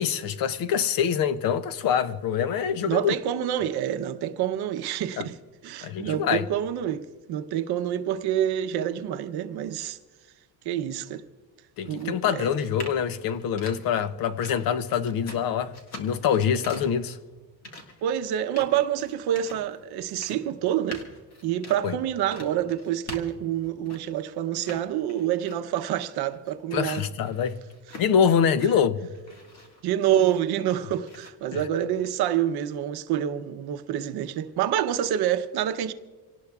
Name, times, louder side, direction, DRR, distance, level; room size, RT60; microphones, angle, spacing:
voice 1, 0.0-3.1 5.2-5.3 5.8-6.5 11.8-17.2 21.8-22.0 26.7-27.6 28.0-29.1 31.5-31.6, left 7 dB, 50° left, 0.7 m, -25 dB
voice 2, 2.9-5.4 5.6-10.0 10.6-11.2 11.8-12.5 18.0-21.0 21.4-27.0 29.8-35.9, right 10 dB, 60° right, 0.8 m, -27 dB
sound 1, 11.9-24.2 24.6-25.8 26.2-28.8 29.2-30.7 31.1-31.3, left 2 dB, 35° left, 1.8 m, -45 dB
26.5 x 18.0 x 2.4 m
cardioid pair, 180°, 45 cm